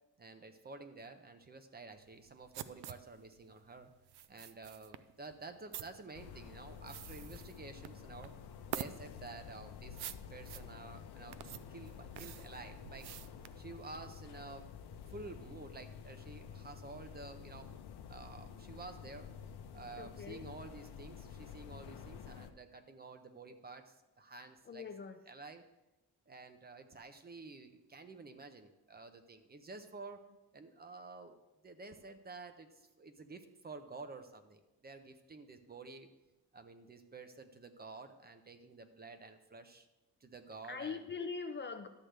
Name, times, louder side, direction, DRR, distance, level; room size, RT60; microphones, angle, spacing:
voice 1, 0.2-3.9 4.3-8.3 8.7-13.1 13.6-14.7 15.1-17.7 18.1-19.3 19.7-24.9 25.3-25.6 26.3-30.3 30.5-31.4 31.6-36.1 36.5-39.9 40.2-41.1, right 3 dB, 25° right, 8 dB, 0.5 m, -51 dB
sound 1, 2.0-14.2, right 11 dB, 80° right, 0.5 m, -48 dB
sound 2, 6.1-22.5, left 7 dB, 75° left, 0.7 m, -50 dB
voice 2, 20.0-20.4 24.7-25.2 40.7-41.9, left 5 dB, 30° left, 7 dB, 0.4 m, -42 dB
11.5 x 7.5 x 3.3 m, 0.98 s
wide cardioid pair, 160°, 39 cm